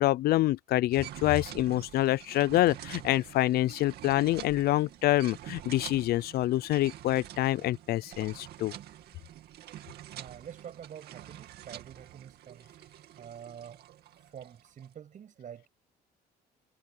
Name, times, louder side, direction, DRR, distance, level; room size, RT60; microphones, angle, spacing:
voice 1, 0.0-8.7, left 16 dB, 70° left, 0.5 m, -26 dB
sound 1, 0.9-14.9, right 13 dB, 70° right, 2.4 m, -47 dB
voice 2, 10.1-12.7 13.2-13.8 14.3-15.7, right 8 dB, 50° right, 6.6 m, -47 dB
cardioid pair, 110°, 17 cm